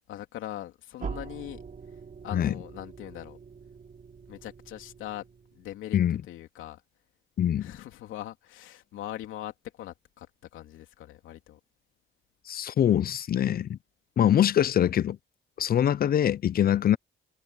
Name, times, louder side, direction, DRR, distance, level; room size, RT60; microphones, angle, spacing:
voice 1, 0.1-1.7 2.2-3.4 4.3-5.2 5.5-6.0 6.3-6.8 7.6-10.3 10.5-11.6, left 13 dB, 85° left, 3.0 m, -41 dB
sound 1, 1.0-5.8, right 6 dB, 40° right, 3.0 m, -43 dB
voice 2, 7.4-7.7 12.5-13.8 14.2-15.2 15.6-17.0, left 10 dB, 50° left, 0.6 m, -23 dB
cardioid pair, 90°, 20 cm